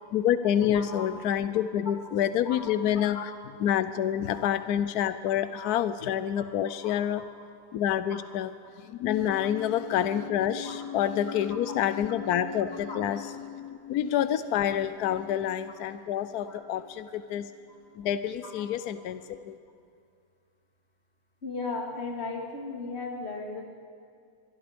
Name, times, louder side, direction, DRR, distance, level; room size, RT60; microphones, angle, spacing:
voice 1, 0.1-3.3 3.6-7.2 7.7-8.5 8.8-17.5 17.9-19.6, left 10 dB, 80° left, 12 dB, 1.2 m, -28 dB
voice 2, 0.7-1.1 2.4-3.2 4.3-4.4 5.5-5.7 6.4-6.5 6.8-7.3 8.1-8.2 10.6-10.8 11.7-11.8 12.9-13.0 16.5-16.6 17.7-17.8 18.4-18.5 21.4-23.6, left 3 dB, 40° left, 1 dB, 2.8 m, -37 dB
25.0 x 22.0 x 5.2 m, 2.4 s
omnidirectional pair, 1.6 m